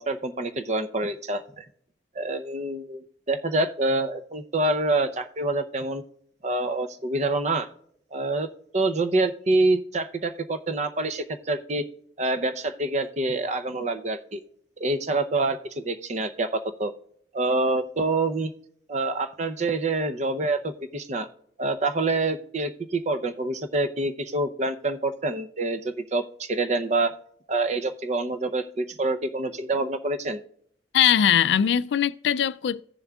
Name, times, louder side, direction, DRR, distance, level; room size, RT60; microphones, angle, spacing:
voice 1, 0.0-1.6 2.2-6.0 6.4-7.7 8.1-8.5 8.7-11.8 12.2-14.4 14.8-16.9 17.3-18.5 18.9-21.3 21.6-27.1 27.5-30.4, right 2 dB, 40° right, 0.6 m, -26 dB
voice 2, 30.9-32.8, left 9 dB, 70° left, 0.3 m, -21 dB
16.0 x 7.0 x 2.3 m
head